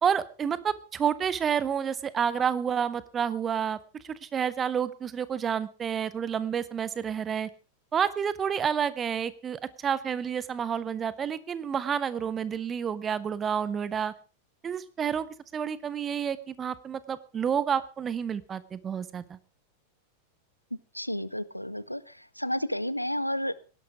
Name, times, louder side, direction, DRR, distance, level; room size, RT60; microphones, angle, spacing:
voice 1, 0.0-3.8 4.0-7.5 7.9-14.1 14.6-15.3 15.5-19.4, right 7 dB, 20° right, 17 dB, 1.1 m, -29 dB
voice 2, 20.9-22.0 22.4-23.6, equal, 90° left, 18 dB, 0.7 m, -31 dB
18.5 x 11.5 x 4.9 m, 0.37 s
figure-of-eight pair, 90°, 0 cm